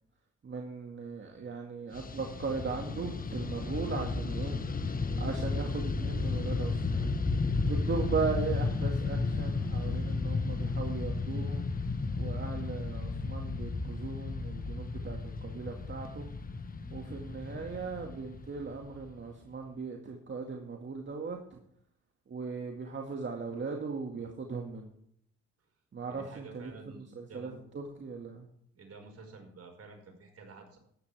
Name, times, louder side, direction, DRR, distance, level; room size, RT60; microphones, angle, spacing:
voice 1, 0.4-4.6 5.2-7.1 7.7-11.7 12.2-16.3 16.9-21.4 22.3-24.9 25.9-26.7 27.2-28.5, right 5 dB, 40° right, 1 dB, 2.1 m, -38 dB
Fixed-wing aircraft airplane, 1.9-19.4, left 3 dB, 30° left, 1.3 m, -33 dB
voice 2, 26.1-27.5 28.7-30.8, right 3 dB, 55° right, 3 dB, 5.3 m, -50 dB
14.0 x 11.5 x 3.5 m, 0.68 s
cardioid pair, 90°, 30 cm